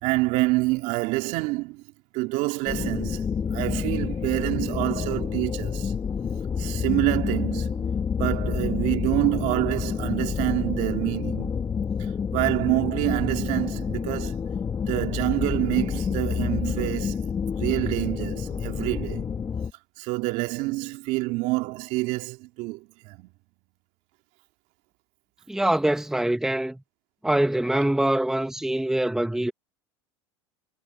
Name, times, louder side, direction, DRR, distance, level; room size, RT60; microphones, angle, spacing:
voice 1, 0.0-1.8 2.1-3.3 3.5-5.9 6.6-7.9 8.2-11.6 12.3-14.4 14.9-17.2 17.6-19.3 20.0-23.3, right 23 dB, 60° right, 2.6 m, -27 dB
sound 1, 2.7-19.7, left 6 dB, 25° left, 2.3 m, -28 dB
voice 2, 25.5-26.8 27.2-29.5, right 1 dB, 5° right, 1.6 m, -24 dB
hypercardioid pair, 100°, 14 cm